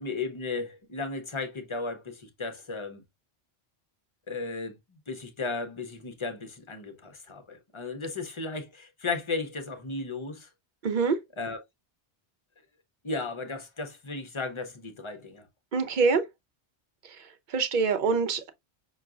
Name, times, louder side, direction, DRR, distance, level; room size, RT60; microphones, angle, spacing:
voice 1, 0.0-3.0 4.3-4.7 5.1-10.5 11.4-11.6 13.0-15.4, left 3 dB, 35° left, 0.6 m, -35 dB
voice 2, 10.8-11.2 15.7-16.2 17.5-18.5, right 4 dB, 55° right, 0.7 m, -24 dB
5.7 x 2.3 x 2.4 m
omnidirectional pair, 1.1 m